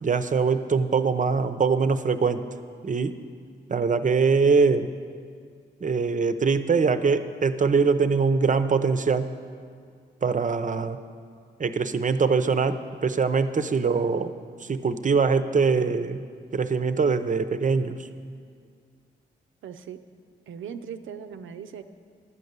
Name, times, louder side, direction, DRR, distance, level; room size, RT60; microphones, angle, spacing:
voice 1, 0.0-2.4 2.8-3.1 3.7-4.9 5.8-9.3 10.2-11.0 11.6-14.3 14.6-16.2 16.5-18.1, right 5 dB, 40° right, 11 dB, 0.6 m, -23 dB
voice 2, 19.6-20.0 20.5-21.8, right 7 dB, 80° right, 9 dB, 0.5 m, -39 dB
11.0 x 5.4 x 8.0 m, 2.1 s
supercardioid pair, 45°, 20 cm